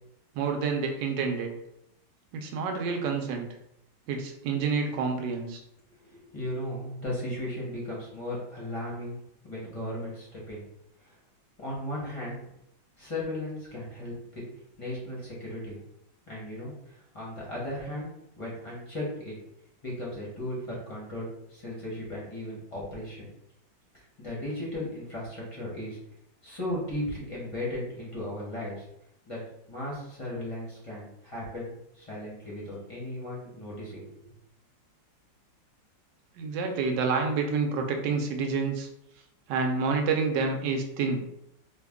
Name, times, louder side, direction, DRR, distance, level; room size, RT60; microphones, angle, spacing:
voice 1, 0.3-1.5 2.3-3.5 4.1-5.6 36.3-38.9 39.5-41.2, right 4 dB, 75° right, 3 dB, 1.2 m, -28 dB
voice 2, 6.0-10.6 11.0-11.1 11.6-12.4 13.0-14.4 14.8-15.8 16.3-18.1 18.4-19.4 19.8-23.3 23.9-26.0 26.4-28.8 29.3-29.4 29.7-34.3, left 1 dB, 30° left, -5 dB, 0.6 m, -36 dB
3.3 x 2.2 x 3.5 m, 0.80 s
omnidirectional pair, 2.0 m